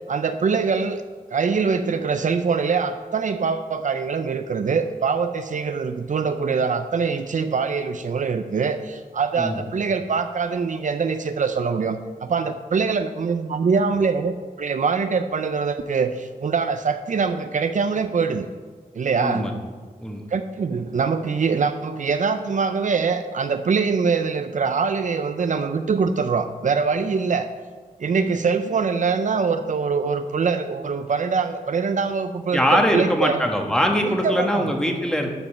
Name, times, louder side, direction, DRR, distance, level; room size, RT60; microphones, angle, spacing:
voice 1, 0.1-1.0 1.3-18.5 18.9-19.4 20.3-27.5 28.0-33.4 34.0-34.7, right 5 dB, 55° right, 8 dB, 0.5 m, -23 dB
voice 2, 19.2-19.5 20.0-20.2 32.5-35.3, equal, 5° left, 2 dB, 1.4 m, -22 dB
12.0 x 5.4 x 6.6 m, 1.5 s
wide cardioid pair, 110°, 15 cm